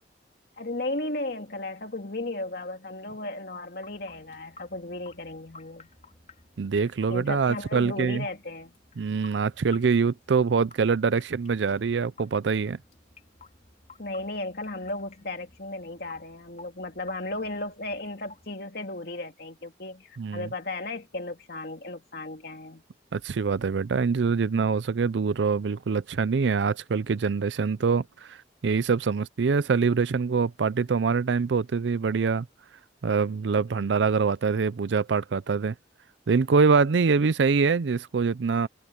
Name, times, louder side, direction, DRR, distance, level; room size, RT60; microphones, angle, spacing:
voice 1, 0.6-5.9 7.1-8.7 14.0-22.8, left 2 dB, 60° left, 2.7 m, -35 dB
sound 1, 3.8-18.5, left 4 dB, 40° left, 4.0 m, -53 dB
voice 2, 6.6-8.2 9.0-12.8 20.2-20.5 23.1-32.5 33.0-35.7 36.3-38.7, right 5 dB, 80° right, 0.5 m, -24 dB
head